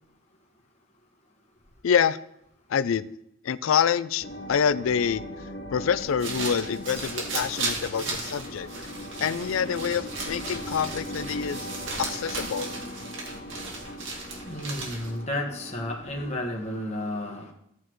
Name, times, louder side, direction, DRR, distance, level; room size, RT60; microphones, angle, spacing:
voice 1, 1.8-2.2 2.7-3.1 3.4-5.2 5.7-8.7 9.2-11.7 12.0-12.7, left 7 dB, 85° left, 16 dB, 0.4 m, -26 dB
sound 1, 4.2-16.4, equal, 55° left, 1.5 m, -40 dB
sound 2, 6.0-15.2, right 3 dB, 70° right, 1.9 m, -36 dB
voice 2, 6.9-10.1 10.5-17.5, left 1 dB, 30° left, 0 dB, 1.4 m, -37 dB
14.5 x 8.2 x 3.1 m, 0.76 s
head